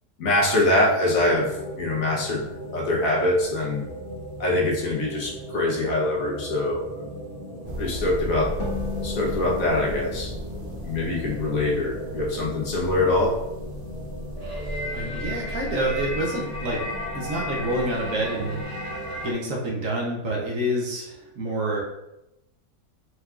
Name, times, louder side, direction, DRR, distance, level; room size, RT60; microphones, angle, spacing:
voice 1, 0.2-2.5 2.7-3.8 4.4-7.1 7.8-8.5 9.0-10.3 10.8-13.4, left 2 dB, 65° left, -2 dB, 1.1 m, -24 dB
sound 1, 1.1-19.3, equal, 25° right, 1.0 m, -36 dB
sound 2, 7.6-18.6, equal, 80° right, 0.4 m, -37 dB
sound 3, 8.6-12.1, left 6 dB, 45° left, 1.6 m, -37 dB
voice 2, 14.9-16.8 17.1-18.6 19.2-21.8, right 1 dB, 60° right, -2 dB, 1.1 m, -27 dB
4.5 x 3.4 x 2.4 m, 0.89 s
omnidirectional pair, 1.7 m